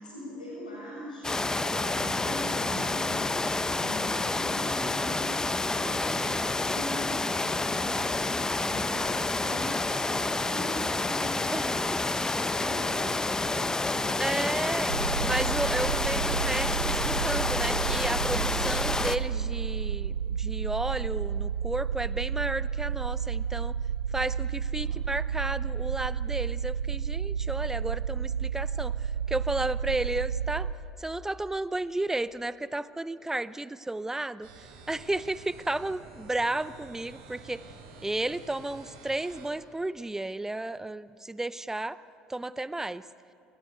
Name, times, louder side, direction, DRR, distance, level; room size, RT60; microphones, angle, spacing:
voice 1, 0.0-14.7 24.7-25.0, equal, 85° left, -4 dB, 7.0 m, -42 dB
sound 1, 1.2-19.2, left 2 dB, 15° left, 0.9 m, -29 dB
voice 2, 14.2-14.9 15.2-23.8 24.1-30.7 31.0-34.5 34.9-37.6 38.0-42.0 42.3-43.0, right 2 dB, 10° right, 17 dB, 0.6 m, -33 dB
sound 2, 14.9-30.7, right 7 dB, 90° right, 0.7 m, -31 dB
sound 3, 34.4-39.5, right 4 dB, 65° right, 4.8 m, -49 dB
28.5 x 16.0 x 9.3 m, 2.6 s
figure-of-eight pair, 60°, 4 cm